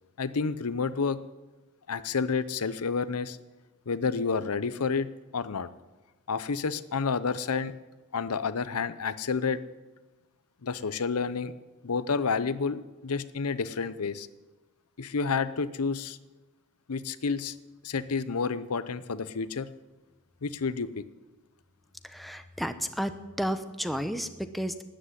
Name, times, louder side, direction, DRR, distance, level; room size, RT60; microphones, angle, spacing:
voice 1, 0.2-1.2 1.9-3.4 3.9-5.7 6.3-7.7 8.1-9.6 10.6-11.5 11.8-14.3 15.0-16.2 16.9-17.5 17.8-19.7 20.4-21.0, left 5 dB, 90° left, 14 dB, 0.7 m, -30 dB
voice 2, 22.0-23.1 23.4-24.8, equal, ahead, 9 dB, 0.8 m, -32 dB
13.0 x 10.0 x 9.6 m, 1.1 s
head